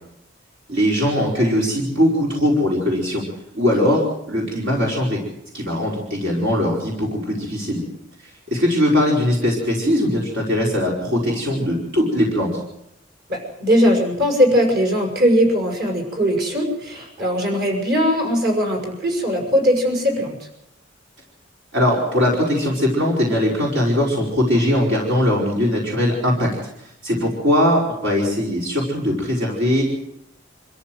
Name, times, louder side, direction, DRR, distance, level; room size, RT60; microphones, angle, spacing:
voice 1, 0.7-3.2 3.5-5.2 5.5-7.8 8.5-12.5 21.7-26.5 27.0-29.8, left 1 dB, 70° right, -3 dB, 5.0 m, -20 dB
voice 2, 13.3-20.4, equal, 55° right, 2 dB, 6.2 m, -19 dB
26.0 x 14.5 x 7.9 m, 0.82 s
head